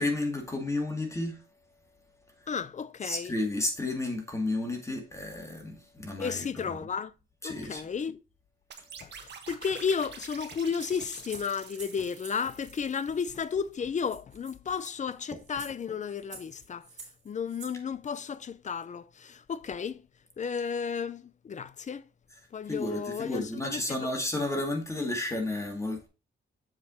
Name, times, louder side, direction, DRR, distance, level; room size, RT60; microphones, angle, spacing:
voice 1, 0.0-1.4 3.0-6.8 7.4-7.8 22.7-26.1, left 2 dB, 15° left, 2.1 m, -32 dB
voice 2, 2.5-3.3 6.2-7.1 7.4-8.2 9.0-16.9 17.2-20.1 20.4-22.1 22.5-24.1, left 6 dB, 35° left, 0.6 m, -33 dB
sound 1, 8.7-13.5, right 6 dB, 55° right, 1.3 m, -47 dB
sound 2, 10.3-12.4 13.4-13.5 13.7-13.8 14.0-17.8, right 4 dB, 35° right, 3.7 m, -49 dB
7.5 x 4.9 x 4.2 m
cardioid pair, 100°, 21 cm